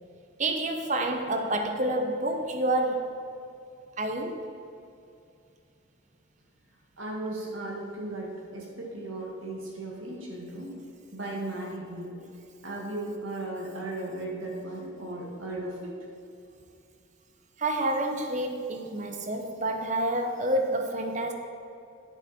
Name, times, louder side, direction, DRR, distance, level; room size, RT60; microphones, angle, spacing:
voice 1, 0.4-3.2 4.0-4.5 17.6-21.3, right 1 dB, 35° right, 4 dB, 0.8 m, -28 dB
voice 2, 7.0-10.7 11.1-12.2 12.6-15.9, right 2 dB, 75° right, -2 dB, 2.0 m, -36 dB
10.0 x 7.4 x 4.3 m, 2.6 s
head